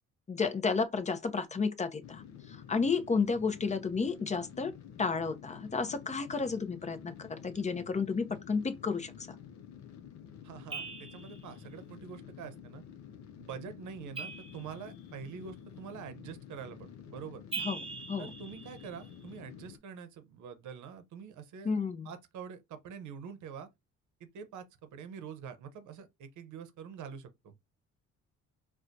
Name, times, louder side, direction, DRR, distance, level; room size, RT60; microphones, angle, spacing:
voice 1, 0.3-4.7 5.0-9.3 17.6-17.8 18.1-18.3 21.6-22.1, left 4 dB, 25° left, 0.6 m, -32 dB
sound 1, 2.0-19.8, left 8 dB, 65° left, 0.6 m, -50 dB
voice 2, 10.4-12.8 13.4-17.4 18.2-21.7 22.0-23.7 24.2-27.5, right 7 dB, 75° right, 0.8 m, -45 dB
sound 2, 10.7-11.5 14.2-15.2 17.5-19.2, right 5 dB, 20° right, 0.8 m, -42 dB
4.3 x 2.2 x 2.6 m
cardioid pair, 90°, 30 cm